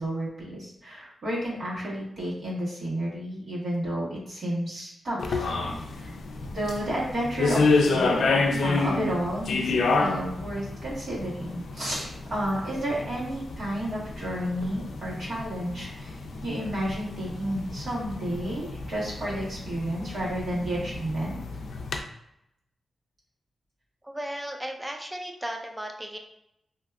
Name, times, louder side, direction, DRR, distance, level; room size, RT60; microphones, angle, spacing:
voice 1, 0.0-5.5 5.9-6.1 6.5-21.4, right 1 dB, 60° right, -7 dB, 1.3 m, -31 dB
sound 1, 5.2-22.0, left 3 dB, 75° left, 0.4 m, -29 dB
voice 2, 24.0-26.2, equal, 10° right, 3 dB, 0.4 m, -35 dB
2.6 x 2.3 x 3.3 m, 0.79 s
wide cardioid pair, 155°, 0 cm